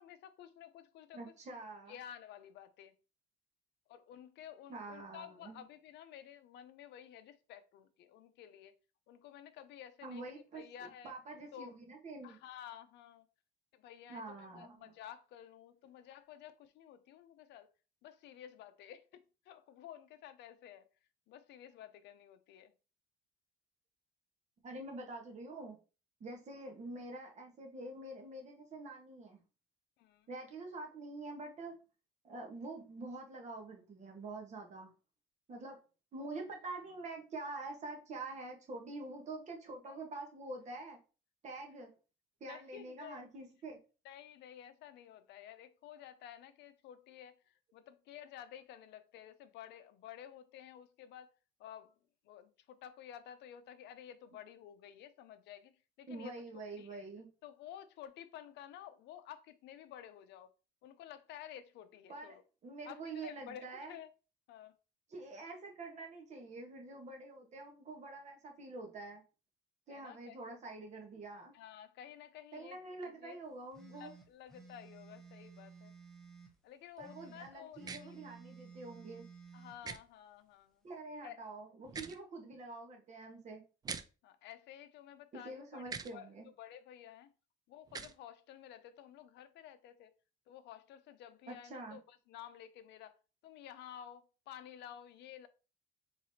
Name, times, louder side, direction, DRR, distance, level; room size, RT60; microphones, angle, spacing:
voice 1, 0.0-1.3 1.9-2.9 3.9-8.7 9.1-11.1 11.5-11.7 12.2-13.3 13.7-17.7 18.0-20.9 21.3-22.7 30.0-30.3 39.8-40.0 42.5-43.3 44.0-51.3 51.6-51.9 52.2-56.3 56.8-57.0 57.4-60.5 60.8-62.4 62.8-64.1 64.5-64.7 69.9-70.4 71.5-73.4 73.9-75.9 76.6-78.2 79.5-80.8 81.2-81.4 84.2-87.3 87.7-90.1 90.5-93.2 93.4-95.5, left 10 dB, 65° left, 0.6 m, -52 dB
voice 2, 1.1-1.9 4.7-5.6 10.0-12.4 14.1-14.9 24.6-25.8 26.2-29.4 30.3-31.8 32.2-34.9 35.5-35.8 36.1-41.0 41.4-41.9 42.4-43.8 56.1-57.3 62.1-62.4 62.6-63.9 65.1-69.2 69.9-71.5 72.5-74.1 77.0-79.3 80.8-83.6 85.3-86.5 91.5-92.0, right 2 dB, 40° right, 1.4 m, -46 dB
sound 1, 73.7-76.5 77.0-79.8, right 5 dB, ahead, 1.0 m, -55 dB
sound 2, 77.8-78.0 79.8-80.0 81.8-82.2 83.8-84.0 85.8-86.1 87.9-88.1, right 5 dB, 20° right, 0.3 m, -42 dB
4.7 x 4.0 x 2.8 m
cardioid pair, 145°, 19 cm